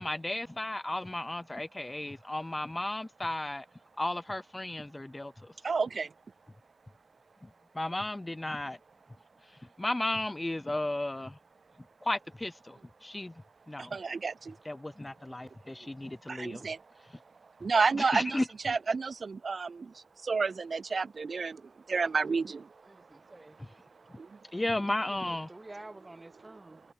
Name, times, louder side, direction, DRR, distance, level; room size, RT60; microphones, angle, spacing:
voice 1, 0.0-3.6 4.0-5.5 7.4-7.5 7.7-8.8 9.8-11.4 12.0-13.3 13.7-14.0 14.7-16.7 17.9-18.4 24.5-25.5, left 1 dB, 25° left, 0.6 m, -34 dB
voice 2, 5.6-6.1 13.8-14.6 16.3-16.8 17.6-21.6 21.9-22.7 24.2-24.4, right 4 dB, 75° right, 0.3 m, -30 dB
voice 3, 22.8-23.6 24.8-26.8, right 2 dB, 30° right, 1.6 m, -50 dB
cardioid pair, 50°, 0 cm